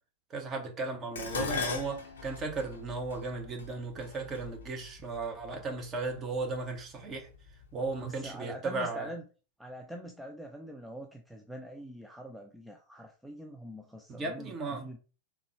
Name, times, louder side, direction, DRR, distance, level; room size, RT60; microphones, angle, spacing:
voice 1, 0.3-7.3 7.7-9.1 14.1-14.9, right 3 dB, 25° right, 0.9 m, -36 dB
Dishes pots and pans, 1.2-5.5 6.4-6.8 7.2-8.0 8.3-8.4, left 4 dB, 65° left, 0.6 m, -39 dB
voice 2, 8.0-9.2 9.6-15.0, equal, ahead, 0.4 m, -44 dB
3.6 x 2.2 x 3.1 m
figure-of-eight pair, 90°, 0 cm